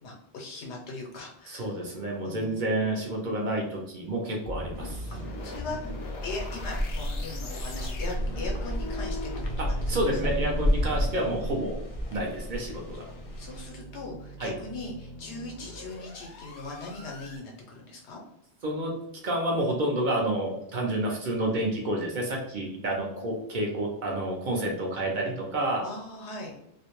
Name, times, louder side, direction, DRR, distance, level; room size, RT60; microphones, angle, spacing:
voice 1, 0.0-1.7 2.2-2.6 5.2-5.9 6.2-9.3 9.6-10.1 10.5-10.7 11.4-11.5 13.4-18.2 25.8-26.5, left 2 dB, 90° left, 0 dB, 1.0 m, -40 dB
voice 2, 1.5-5.1 9.6-11.8 12.1-13.1 14.4-14.5 18.6-18.9 19.2-25.8, right 1 dB, 55° right, 0 dB, 0.6 m, -29 dB
sound 1, 4.4-17.4, left 1 dB, 70° left, 0.8 m, -39 dB
sound 2, 4.7-13.7, equal, 50° left, 0.4 m, -32 dB
2.4 x 2.1 x 2.9 m, 0.79 s
omnidirectional pair, 1.1 m